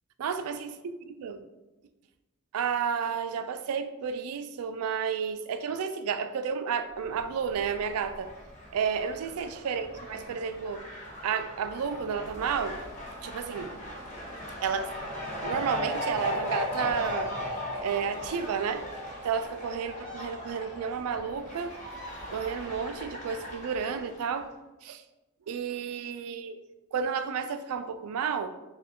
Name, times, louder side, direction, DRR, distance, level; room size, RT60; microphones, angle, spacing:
voice 1, 0.2-0.8 1.1-1.4 2.5-8.3 8.7-10.8 11.2-12.8 13.2-13.7 14.6-14.9 15.4-17.3 17.8-18.8 19.2-21.7 22.3-24.5 24.8-25.0 25.5-26.6 26.9-28.5, right 6 dB, 80° right, 10 dB, 0.3 m, -31 dB
Fowl, 7.0-24.4, left 1 dB, 35° left, 1.1 m, -38 dB
4.4 x 2.3 x 3.6 m, 1.1 s
head